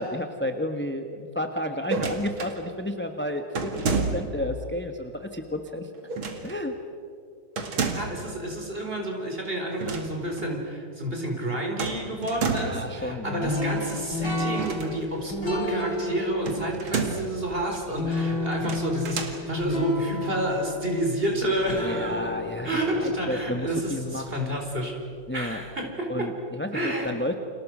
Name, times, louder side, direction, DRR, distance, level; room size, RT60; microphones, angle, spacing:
voice 1, 0.0-5.9 6.4-6.7 12.5-13.5 21.8-24.6 25.3-25.6 26.1-27.3, left 1 dB, 5° left, 5 dB, 0.9 m, -32 dB
sound 1, 1.8-2.6 3.5-4.5 6.1-6.6 7.6-8.2 9.7-10.1 10.4-10.5 11.8-12.9 14.5-15.3 16.4-17.4 18.5-19.4, right 4 dB, 70° right, 3.0 m, -30 dB
voice 2, 7.8-22.3 22.6-25.0 25.3-26.3 26.7-27.1, right 1 dB, 25° right, 1 dB, 4.7 m, -29 dB
sound 2, 13.4-24.5, left 2 dB, 50° left, 5.9 m, -32 dB
30.0 x 27.5 x 6.3 m, 2.5 s
omnidirectional pair, 2.3 m